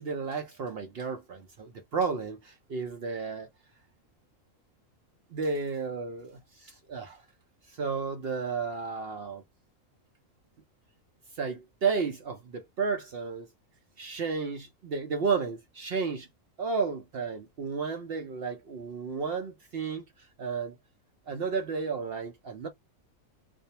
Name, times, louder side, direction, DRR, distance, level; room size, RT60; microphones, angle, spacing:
voice 1, 0.0-3.5 5.3-7.2 7.7-9.4 11.3-13.5 14.0-16.3 16.6-20.0 20.4-20.8 21.3-22.7, right 5 dB, 60° right, 0.6 m, -32 dB
2.6 x 2.0 x 2.7 m
omnidirectional pair, 1.5 m